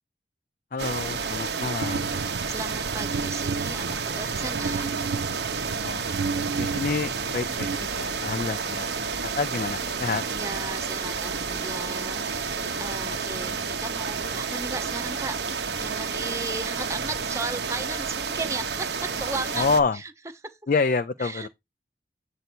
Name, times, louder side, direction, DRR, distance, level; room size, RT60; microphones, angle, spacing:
voice 1, 0.7-2.1 5.8-6.0 6.6-8.9 9.2-10.2 13.5-13.6 19.5-20.0 20.7-21.5, left 4 dB, 45° left, 0.4 m, -27 dB
sound 1, 0.8-19.8, right 5 dB, 70° right, 1.0 m, -30 dB
sound 2, 1.8-8.4, right 4 dB, 90° right, 0.5 m, -33 dB
voice 2, 2.5-4.9 9.9-15.4 15.8-20.1 20.4-20.6 21.2-21.5, right 3 dB, 15° right, 0.7 m, -36 dB
7.9 x 2.7 x 6.0 m
head